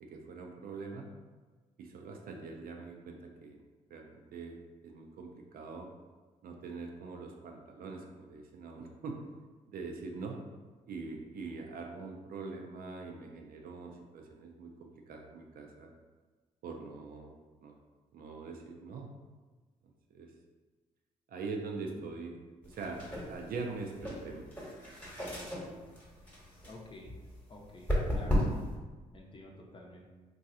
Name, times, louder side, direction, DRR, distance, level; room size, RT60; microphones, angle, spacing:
voice 1, 0.0-1.1 1.8-3.6 3.9-5.9 6.4-9.2 9.7-10.4 10.9-15.9 16.6-17.3 17.6-17.7 18.1-19.1 20.1-20.3 21.3-24.6, right 4 dB, 60° right, 2 dB, 0.5 m, -43 dB
sound 1, 22.6-28.8, equal, 10° left, 1.1 m, -35 dB
voice 2, 26.7-27.1 27.5-28.4 29.1-30.1, left 1 dB, 30° left, -1 dB, 0.7 m, -50 dB
3.0 x 2.4 x 2.7 m, 1.3 s
hypercardioid pair, 40°, 17 cm